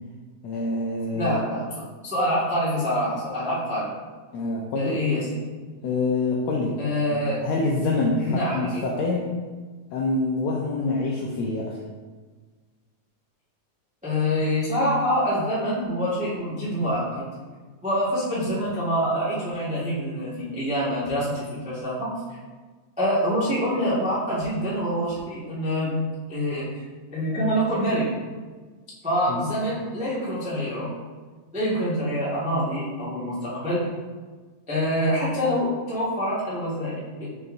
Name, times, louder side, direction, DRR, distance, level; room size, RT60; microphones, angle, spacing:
voice 1, 0.4-1.4 4.3-5.0 5.8-9.3 9.9-11.8 29.3-29.4, left 3 dB, 85° left, -1 dB, 1.5 m, -26 dB
voice 2, 1.1-3.9 4.7-5.2 6.8-7.4 8.2-8.8 14.0-17.3 17.8-22.1 23.0-25.9 26.3-26.7 27.1-28.1 29.0-30.9 31.5-33.8 34.7-37.3, equal, 10° right, -9 dB, 0.4 m, -26 dB
6.6 x 5.8 x 2.6 m, 1.4 s
omnidirectional pair, 3.7 m